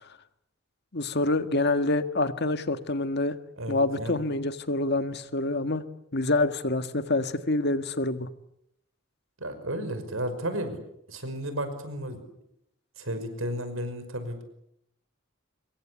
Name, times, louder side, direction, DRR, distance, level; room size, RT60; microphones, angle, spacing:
voice 1, 0.9-3.4 3.7-5.8 6.1-8.3, left 2 dB, 55° left, 10 dB, 1.7 m, -26 dB
voice 2, 3.6-4.2 9.4-10.8 11.1-12.2 13.0-14.4, right 1 dB, 90° right, 10 dB, 5.8 m, -33 dB
26.0 x 23.0 x 8.4 m, 0.78 s
head